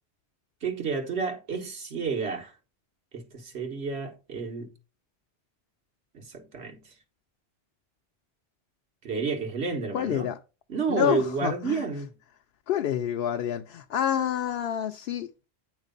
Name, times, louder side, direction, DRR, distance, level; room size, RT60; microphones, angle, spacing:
voice 1, 0.6-2.5 3.1-4.7 6.1-6.9 9.0-10.2 10.7-12.1, right 5 dB, 85° right, 1.5 m, -30 dB
voice 2, 9.9-10.4 10.9-11.9 12.7-15.3, left 10 dB, 70° left, 0.8 m, -28 dB
8.9 x 3.2 x 5.1 m
omnidirectional pair, 1.1 m